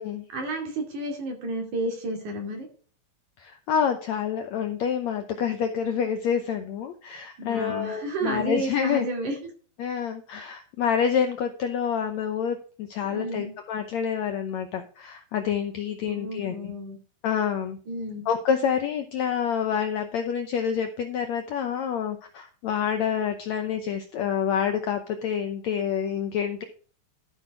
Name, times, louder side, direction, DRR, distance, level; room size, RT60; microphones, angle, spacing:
voice 1, 0.3-2.7 7.4-9.4 13.1-13.5 16.1-17.0 17.9-18.2, right 1 dB, 60° right, 3 dB, 3.8 m, -31 dB
voice 2, 3.4-9.1 9.8-16.7 17.2-17.8 18.3-26.6, left 8 dB, 75° left, 6 dB, 1.7 m, -27 dB
12.5 x 6.0 x 4.8 m, 0.42 s
omnidirectional pair, 4.1 m